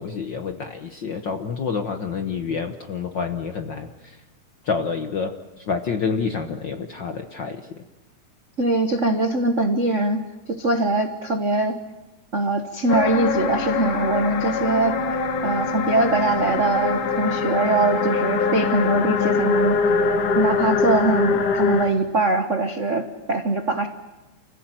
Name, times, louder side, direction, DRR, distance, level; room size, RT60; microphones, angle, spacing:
voice 1, 0.0-4.2 4.6-7.8, left 5 dB, 55° left, 7 dB, 1.2 m, -28 dB
voice 2, 8.6-11.8 12.3-15.0 15.4-20.0 20.3-23.9, right 2 dB, 55° right, 7 dB, 0.8 m, -22 dB
sound 1, 12.9-21.9, left 5 dB, 85° left, 3.0 m, -23 dB
29.0 x 15.5 x 9.1 m, 1.2 s
omnidirectional pair, 3.5 m